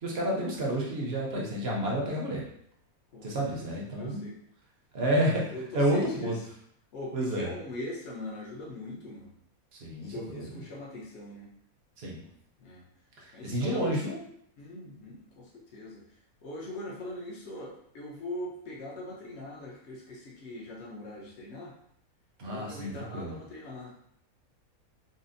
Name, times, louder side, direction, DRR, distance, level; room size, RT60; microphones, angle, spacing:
voice 1, 0.0-2.4 3.2-4.3 4.9-6.4 7.1-7.5 9.7-10.6 12.0-12.2 13.2-14.2 22.4-23.4, right 1 dB, 50° right, -3 dB, 0.9 m, -30 dB
voice 2, 3.1-3.7 4.0-4.3 5.5-6.3 6.9-9.3 10.0-11.5 12.6-12.8 13.3-13.9 14.6-16.0 16.4-21.7 22.5-23.9, left 1 dB, 55° left, -3 dB, 1.0 m, -41 dB
4.1 x 2.1 x 2.5 m, 0.69 s
omnidirectional pair, 1.5 m